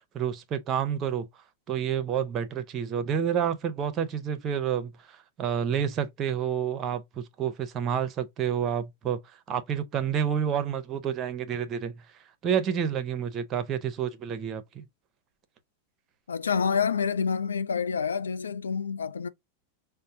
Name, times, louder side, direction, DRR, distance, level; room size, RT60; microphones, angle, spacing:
voice 1, 0.1-1.3 1.7-9.2 9.5-12.0 12.4-14.9, right 8 dB, 30° right, 0.7 m, -29 dB
voice 2, 16.3-19.3, left 6 dB, 70° left, 0.3 m, -28 dB
5.2 x 2.1 x 2.7 m
figure-of-eight pair, 90°, 0 cm